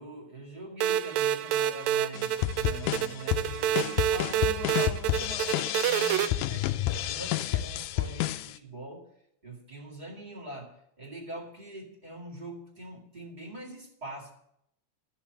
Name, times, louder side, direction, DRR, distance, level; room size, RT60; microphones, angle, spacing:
voice 1, 0.0-9.1 9.4-14.3, right 2 dB, 20° right, -2 dB, 1.6 m, -43 dB
sound 1, 0.8-6.3, right 10 dB, 80° right, 1.7 m, -28 dB
sound 2, 2.1-8.5, left 14 dB, 80° left, 2.0 m, -30 dB
12.5 x 5.8 x 8.4 m, 0.75 s
omnidirectional pair, 3.6 m